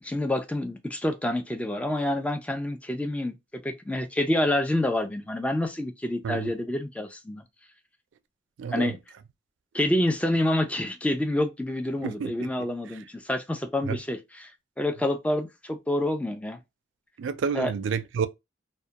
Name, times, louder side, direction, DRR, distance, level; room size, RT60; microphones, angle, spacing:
voice 1, 0.0-7.4 8.7-9.0 9.7-14.5 14.8-16.6 17.5-17.7, left 1 dB, 5° left, 0.3 m, -27 dB
voice 2, 8.6-8.9 12.0-12.5 13.8-14.0 17.2-18.3, right 6 dB, 85° right, 0.3 m, -29 dB
2.2 x 2.1 x 2.7 m
head